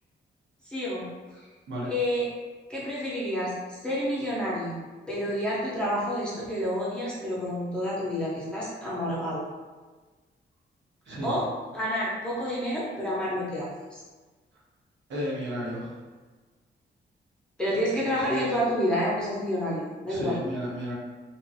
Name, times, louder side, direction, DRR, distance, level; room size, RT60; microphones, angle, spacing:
voice 1, 0.6-1.1 1.9-2.3 2.7-4.8 5.1-9.4 11.2-11.5 11.7-14.0 17.6-20.4, equal, 5° left, -8 dB, 0.6 m, -29 dB
voice 2, 15.1-15.9 20.1-20.9, equal, 85° right, -4 dB, 0.9 m, -32 dB
2.8 x 2.4 x 2.6 m, 1.3 s
wide cardioid pair, 170°, 19 cm